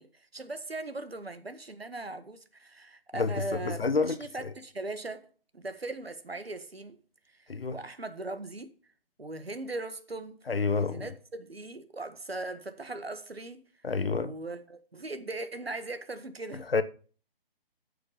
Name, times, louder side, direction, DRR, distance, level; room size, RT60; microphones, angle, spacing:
voice 1, 0.0-5.2 5.5-7.0 7.4-7.5 7.7-8.7 9.2-10.4 10.7-13.6 14.0-16.6, right 2 dB, 85° right, 1.6 m, -39 dB
voice 2, 3.1-4.5 7.5-7.8 10.5-11.1 13.8-14.3 16.7-16.8, left 4 dB, 75° left, 1.1 m, -29 dB
9.8 x 6.7 x 5.6 m
figure-of-eight pair, 140°, 30 cm